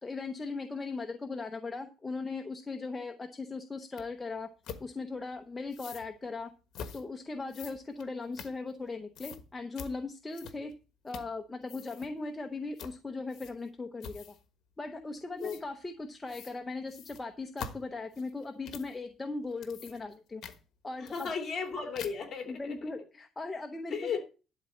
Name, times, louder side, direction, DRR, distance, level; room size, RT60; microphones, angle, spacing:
voice 1, 0.0-4.5 4.8-6.5 6.9-10.7 11.0-14.2 14.8-20.4 20.8-21.3 22.5-24.2, left 3 dB, 15° left, 5 dB, 0.8 m, -38 dB
sound 1, 4.0-4.1 4.6-4.8 5.7-6.1 6.7-7.0 7.5-8.9 9.2-9.4 9.8-9.9 10.3-10.8 11.1-11.4 11.6-12.1 12.8-13.0 13.3-13.7 14.0-14.5 15.4-15.6 16.3-16.6 16.9-19.0 19.4-20.2 20.4-20.6 21.1-21.7 22.0-22.3, left 7 dB, 55° left, 1.4 m, -45 dB
voice 2, 21.0-22.8 23.9-24.2, left 6 dB, 35° left, 4 dB, 2.8 m, -35 dB
11.5 x 4.1 x 7.6 m, 0.33 s
cardioid pair, 155°, 0 cm